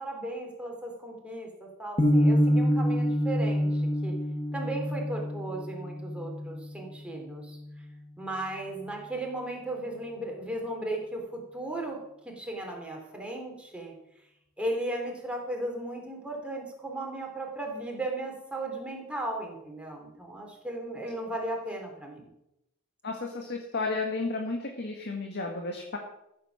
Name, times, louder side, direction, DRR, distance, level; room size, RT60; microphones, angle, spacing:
voice 1, 0.0-4.1 4.5-7.6 8.2-12.0 12.2-13.9 14.6-22.3, right 1 dB, 5° right, 0 dB, 3.1 m, -36 dB
sound 1, 2.0-8.0, equal, 30° left, 1.6 m, -27 dB
voice 2, 23.0-26.0, left 3 dB, 50° left, 2 dB, 1.7 m, -32 dB
14.5 x 7.4 x 7.1 m, 0.85 s
head